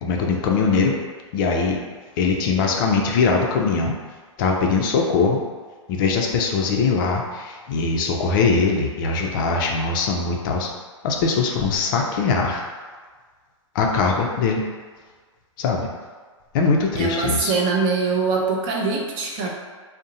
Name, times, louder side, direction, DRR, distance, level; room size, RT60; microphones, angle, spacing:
voice 1, 0.0-1.0 1.3-1.8 2.2-3.9 4.4-5.4 5.9-10.7 11.0-12.6 13.7-14.7 15.6-15.9 16.5-17.5 19.4-19.5, left 4 dB, 40° left, 1 dB, 0.4 m, -21 dB
voice 2, 17.0-19.5, right 4 dB, 30° right, -1 dB, 0.4 m, -23 dB
2.5 x 2.0 x 2.6 m, 1.5 s
hypercardioid pair, 125°, 16 cm